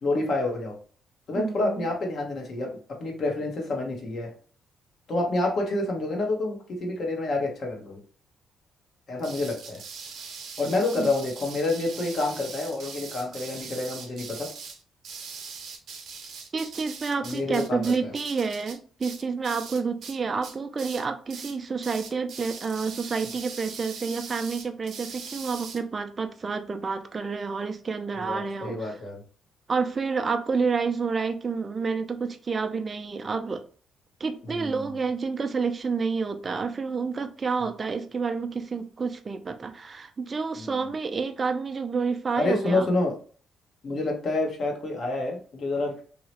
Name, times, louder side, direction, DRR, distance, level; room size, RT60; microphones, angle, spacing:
voice 1, 0.0-0.8 1.3-4.3 5.1-8.0 9.1-9.8 10.6-14.5 17.2-18.1 28.1-29.2 34.5-34.7 37.6-37.7 40.6-40.7 42.4-43.1 43.8-46.0, left 2 dB, 55° left, 1 dB, 1.1 m, -28 dB
voice 2, 1.3-1.9 11.0-11.1 16.5-29.0 29.7-33.6 34.2-42.9, right 5 dB, 35° right, 7 dB, 0.4 m, -29 dB
sound 1, 9.2-20.2 20.4-21.0 21.3-21.6 21.8-25.8, right 5 dB, 70° right, 0.8 m, -41 dB
3.0 x 2.8 x 2.9 m, 0.42 s
cardioid pair, 90°, 0 cm